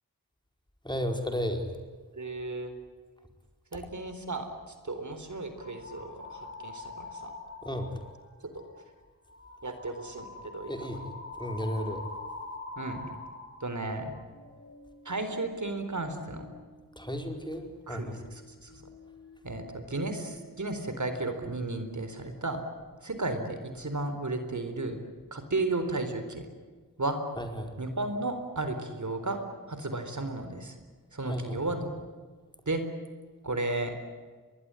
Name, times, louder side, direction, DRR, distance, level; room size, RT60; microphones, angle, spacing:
voice 1, 0.8-1.8 7.6-7.9 10.7-12.0 17.0-18.2 27.4-27.7 31.2-31.6, equal, 10° left, 5 dB, 4.6 m, -34 dB
voice 2, 2.1-2.7 3.7-4.5 4.8-7.3 9.6-10.7 12.8-13.1 13.6-14.1 15.1-16.5 17.9-18.2 18.6-18.7 19.4-22.6 23.0-25.0 25.3-26.5 27.0-27.2 27.8-29.4 29.7-30.7 31.1-31.9 32.7-32.8 33.4-33.9, right 2 dB, 55° right, 8 dB, 4.1 m, -33 dB
sound 1, 5.6-8.2 8.5-8.9 9.3-19.6 19.9-20.6, left 3 dB, 35° left, 7.0 m, -46 dB
23.5 x 21.0 x 9.9 m, 1.4 s
cardioid pair, 50°, 36 cm